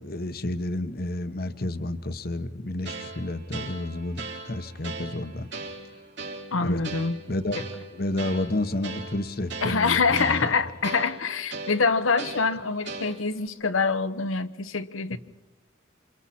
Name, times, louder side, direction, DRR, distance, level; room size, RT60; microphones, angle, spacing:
voice 1, 0.0-5.5 6.6-6.8 7.3-7.6 7.9-10.5, left 1 dB, 50° left, 10 dB, 1.1 m, -30 dB
sound 1, 2.8-13.5, right 4 dB, 65° right, 4.0 m, -39 dB
voice 2, 6.5-7.2 9.6-15.2, left 4 dB, 90° left, 11 dB, 1.0 m, -25 dB
28.5 x 27.5 x 4.4 m, 0.98 s
head